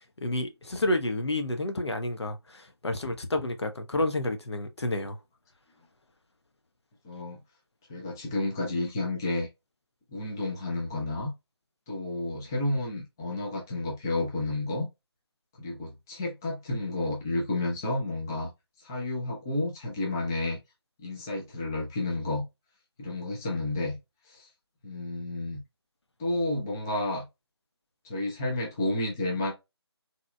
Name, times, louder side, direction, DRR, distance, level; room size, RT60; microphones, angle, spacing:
voice 1, 0.2-5.2, left 1 dB, 75° left, 0.9 m, -30 dB
voice 2, 7.0-7.4 7.9-9.5 10.1-11.3 11.9-14.9 15.6-18.5 18.8-20.6 21.0-22.4 23.0-24.0 24.3-24.5 24.8-25.6 26.2-27.2 28.0-29.5, left 2 dB, 10° left, 0.4 m, -31 dB
4.0 x 2.9 x 2.2 m
figure-of-eight pair, 160°, 14 cm